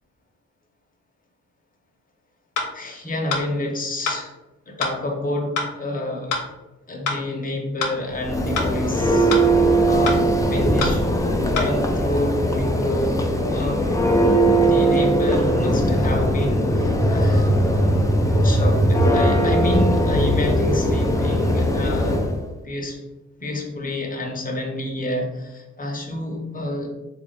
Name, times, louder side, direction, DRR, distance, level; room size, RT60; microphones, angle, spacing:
sound 1, 2.6-2.7 3.3-3.5 4.1-4.2 4.8-5.0 5.6-5.7 6.3-6.4 7.1-7.2 7.8-8.0 8.6-8.7 9.3-9.5 10.1-10.2 10.8-11.0 11.6-11.7, left 3 dB, 80° left, 0.8 m, -25 dB
voice 1, 2.7-4.3 4.7-6.4 6.9-9.3 9.6-13.9 14.5-17.5 18.4-22.2 22.6-23.0 23.4-26.9, left 1 dB, 25° left, 1 dB, 0.8 m, -28 dB
Church bell, 8.1-22.4, right 1 dB, 10° left, 0.4 m, -19 dB
3.3 x 2.5 x 3.3 m, 1.1 s
cardioid pair, 75°, 31 cm